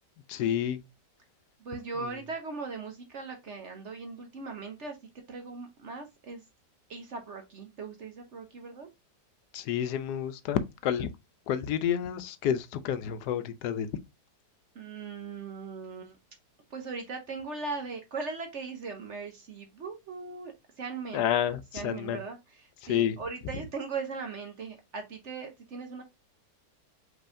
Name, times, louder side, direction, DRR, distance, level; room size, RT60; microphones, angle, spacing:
voice 1, 0.3-0.8 9.5-11.1 11.5-13.9 21.1-22.2 22.9-23.2, left 9 dB, 70° left, 1.1 m, -29 dB
voice 2, 1.6-5.0 5.3-6.4 6.9-8.9 14.7-16.2 16.7-21.2 21.7-26.0, right 4 dB, 55° right, 0.9 m, -39 dB
5.3 x 3.5 x 2.5 m
omnidirectional pair, 1.8 m